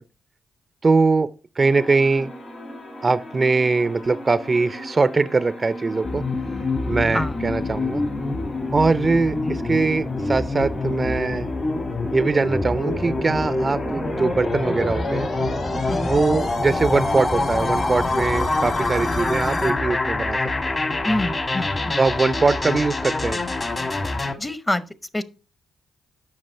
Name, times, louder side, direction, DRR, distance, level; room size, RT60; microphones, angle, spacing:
voice 1, 0.8-2.3 3.0-6.2 6.9-8.0 8.7-11.5 12.1-15.3 16.0-20.4 20.6-20.7 22.0-23.4, right 3 dB, 35° right, 0.4 m, -21 dB
sound 1, 1.6-19.7, left 1 dB, 60° left, 3.0 m, -35 dB
sound 2, 6.0-24.3, left 2 dB, 35° left, 1.3 m, -26 dB
voice 2, 15.9-16.2 21.0-22.1 24.4-24.8 25.1-25.2, left 1 dB, 20° left, 0.8 m, -26 dB
7.6 x 5.8 x 4.4 m
supercardioid pair, 60°, 0 cm